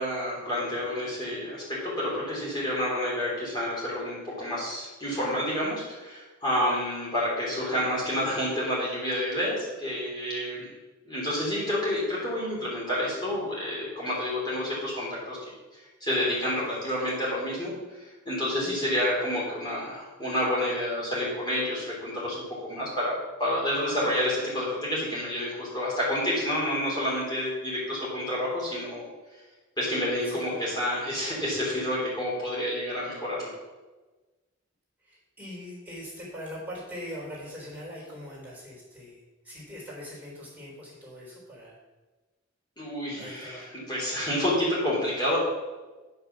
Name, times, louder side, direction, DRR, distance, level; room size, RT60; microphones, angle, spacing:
voice 1, 0.0-10.7 11.0-15.4 16.0-22.4 22.7-29.1 29.8-33.5 42.8-45.4, left 1 dB, 20° left, -7 dB, 3.3 m, -29 dB
voice 2, 30.2-30.6 35.0-41.8 43.2-43.7, equal, 10° right, -6 dB, 3.7 m, -42 dB
10.0 x 5.8 x 6.1 m, 1.2 s
head